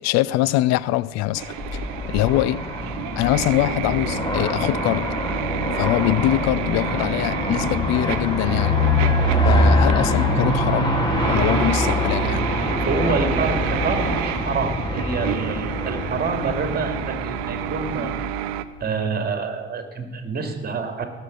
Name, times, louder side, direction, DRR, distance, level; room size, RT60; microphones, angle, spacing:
voice 1, 0.0-1.6 2.1-2.7 3.2-5.2 5.8-8.8 9.4-11.0 11.3-12.6, left 15 dB, 60° left, 0.6 m, -23 dB
Aircraft, 1.4-18.6, left 1 dB, 15° left, 2.8 m, -24 dB
sound 1, 1.4-18.7, right 13 dB, 70° right, 0.8 m, -31 dB
voice 2, 12.7-18.1 18.8-21.0, right 4 dB, 30° right, 2.6 m, -27 dB
18.5 x 7.7 x 5.4 m
hypercardioid pair, 70°, 30 cm